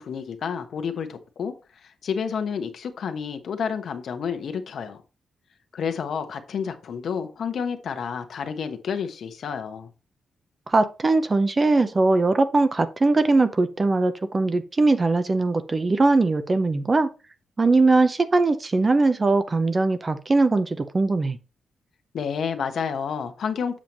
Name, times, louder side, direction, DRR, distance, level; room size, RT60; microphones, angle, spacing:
voice 1, 0.0-1.5 1.8-5.0 5.7-9.9 22.1-23.8, left 6 dB, 65° left, 1.2 m, -30 dB
voice 2, 10.7-17.1 17.6-21.4, right 3 dB, 30° right, 0.7 m, -20 dB
7.5 x 7.0 x 3.0 m
cardioid pair, 115°, 0 cm